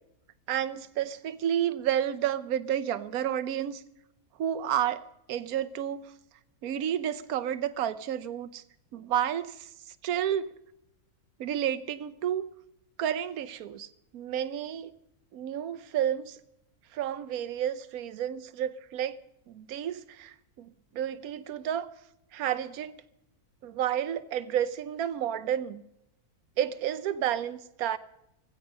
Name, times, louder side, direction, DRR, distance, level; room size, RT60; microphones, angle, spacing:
voice 1, 0.5-3.8 4.4-6.0 6.6-8.6 8.9-9.7 10.0-10.5 11.4-12.5 13.0-13.9 14.1-14.9 15.3-16.4 16.9-19.2 19.5-21.9 22.3-22.9 23.6-25.8 26.6-28.0, right 10 dB, 70° right, 1.2 m, -31 dB
15.5 x 15.5 x 5.3 m
omnidirectional pair, 1.7 m